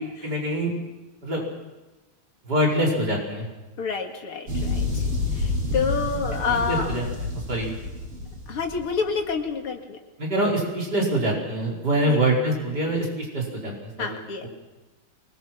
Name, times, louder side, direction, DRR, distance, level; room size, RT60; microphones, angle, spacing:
voice 1, 0.2-0.7 1.2-1.4 2.5-3.5 6.7-7.0 7.5-7.7 10.2-14.2, right 1 dB, 50° right, -1 dB, 5.6 m, -24 dB
voice 2, 3.8-5.0 5.4-7.0 8.5-10.0 12.1-12.2 14.0-14.5, left 5 dB, 85° left, 2 dB, 3.0 m, -28 dB
sound 1, 4.5-9.3, left 3 dB, 90° right, 6.1 m, -29 dB
24.5 x 20.5 x 6.0 m, 1.1 s
omnidirectional pair, 2.4 m